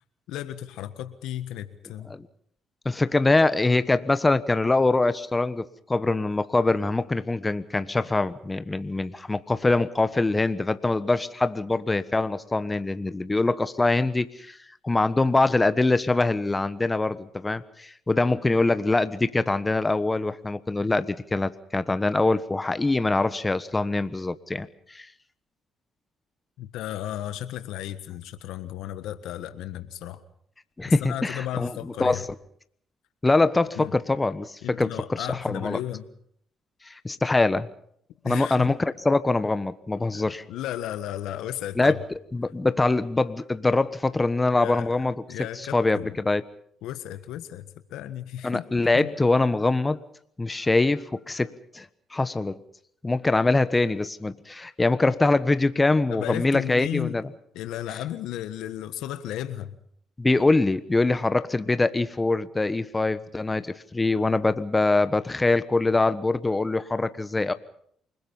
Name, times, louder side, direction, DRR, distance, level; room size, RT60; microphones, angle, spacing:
voice 1, 0.3-2.2 26.6-30.2 31.0-32.2 33.8-33.9 34.6-36.0 38.2-38.7 40.1-41.9 44.5-44.9 45.3-46.2 46.8-48.6 48.9-49.1 56.1-57.2 57.5-59.8, left 12 dB, 80° left, 11 dB, 1.5 m, -34 dB
voice 2, 2.8-14.6 14.8-25.1 30.8-32.3 33.2-35.8 36.9-37.7 38.2-40.4 41.8-42.0 42.3-45.1 45.6-46.4 48.4-50.0 50.4-51.9 52.1-52.6 53.0-57.2 60.2-67.5, left 2 dB, 20° left, 13 dB, 1.3 m, -24 dB
28.5 x 20.5 x 5.5 m, 0.65 s
supercardioid pair, 60°, 0 cm